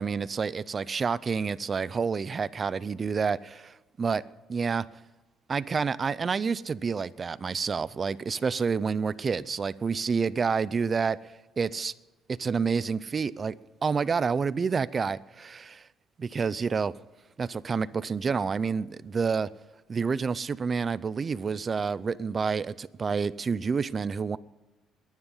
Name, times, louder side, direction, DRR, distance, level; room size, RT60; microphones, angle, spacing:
voice 1, 0.0-4.2 4.5-4.9 5.5-11.9 12.3-13.6 13.8-15.8 16.2-16.9 17.4-19.5 19.9-24.4, right 5 dB, 25° right, 0.5 m, -29 dB
22.0 x 9.8 x 5.6 m
cardioid pair, 155°, 0 cm